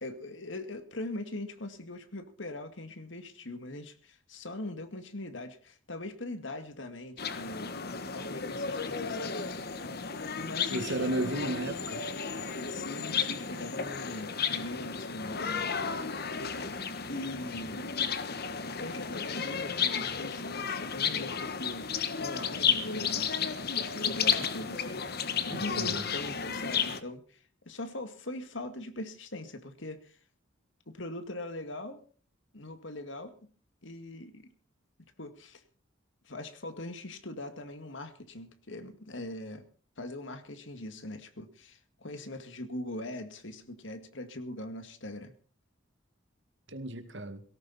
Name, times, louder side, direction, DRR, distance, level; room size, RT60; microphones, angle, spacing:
voice 1, 0.0-9.6 10.4-11.3 12.7-16.3 17.1-17.8 18.8-30.2 30.9-32.0 32.5-33.4 33.8-34.5 35.2-35.6 36.2-39.7 40.0-45.3, left 1 dB, 70° left, 9 dB, 2.1 m, -41 dB
sound 1, 7.2-27.0, left 6 dB, 55° left, 1.4 m, -33 dB
voice 2, 10.7-12.0 25.5-26.0 46.7-47.4, right 1 dB, 65° right, 9 dB, 2.2 m, -34 dB
18.0 x 17.5 x 4.2 m, 0.40 s
head